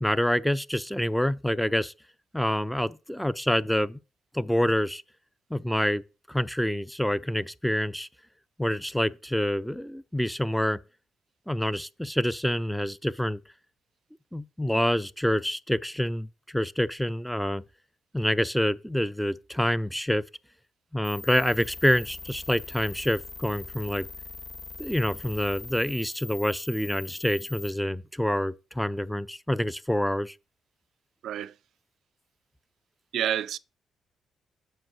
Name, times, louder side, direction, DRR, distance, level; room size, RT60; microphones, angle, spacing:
voice 1, 0.0-1.9 2.3-4.0 4.3-5.0 5.5-6.0 6.3-8.1 8.6-10.8 11.5-13.4 14.3-16.3 16.5-17.6 18.1-20.2 20.9-24.1 24.8-30.3, equal, 5° left, 0.4 m, -27 dB
sound 1, 21.0-27.7, left 3 dB, 45° left, 2.5 m, -42 dB
voice 2, 31.2-31.5 33.1-33.6, right 10 dB, 75° right, 0.5 m, -28 dB
7.8 x 5.4 x 6.1 m
cardioid pair, 90°, 0 cm